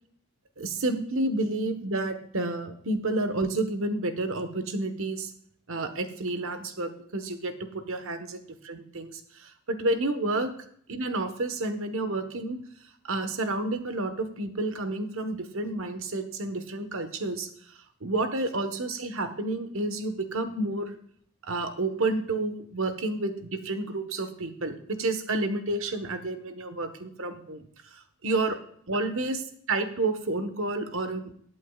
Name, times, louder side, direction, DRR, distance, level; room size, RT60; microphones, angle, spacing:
voice 1, 0.6-5.3 5.7-10.5 10.9-12.6 13.0-17.5 18.0-20.9 21.4-27.6 27.9-28.6 28.9-29.4 29.7-31.2, right 2 dB, 65° right, 9 dB, 1.3 m, -30 dB
20.5 x 8.4 x 2.4 m, 0.63 s
head